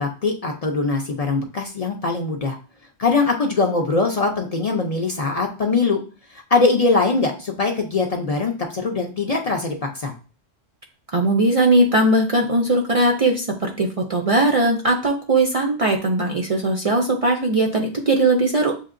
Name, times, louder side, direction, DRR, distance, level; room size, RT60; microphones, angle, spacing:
voice 1, 0.0-2.6 3.0-6.0 6.3-10.1, left 3 dB, 45° left, 1 dB, 0.5 m, -22 dB
voice 2, 11.1-18.7, right 2 dB, 45° right, 1 dB, 0.5 m, -19 dB
7.2 x 2.7 x 2.5 m, 0.36 s
omnidirectional pair, 1.1 m